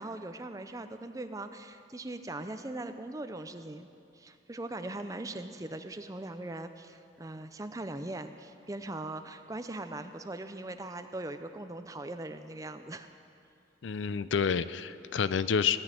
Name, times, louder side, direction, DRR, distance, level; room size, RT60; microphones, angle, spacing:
voice 1, 0.0-3.9 4.1-13.1, right 2 dB, 20° right, 9 dB, 0.5 m, -40 dB
voice 2, 13.8-15.8, left 6 dB, 85° left, 15 dB, 0.4 m, -29 dB
16.5 x 6.2 x 9.0 m, 2.5 s
head